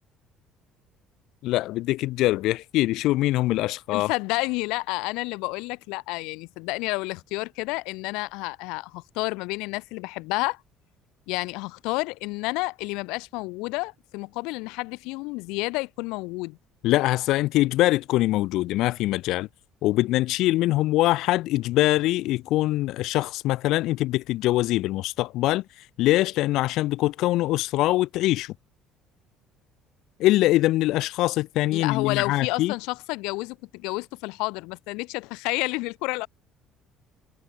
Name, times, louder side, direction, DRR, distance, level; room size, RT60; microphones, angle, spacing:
voice 1, 1.4-4.1 16.8-19.5 19.8-25.6 26.0-28.5 30.2-32.7, left 17 dB, 70° left, 1.1 m, -23 dB
voice 2, 3.9-10.6 11.3-16.6 31.7-36.3, left 25 dB, 90° left, 1.6 m, -30 dB
cardioid pair, 115°, 0 cm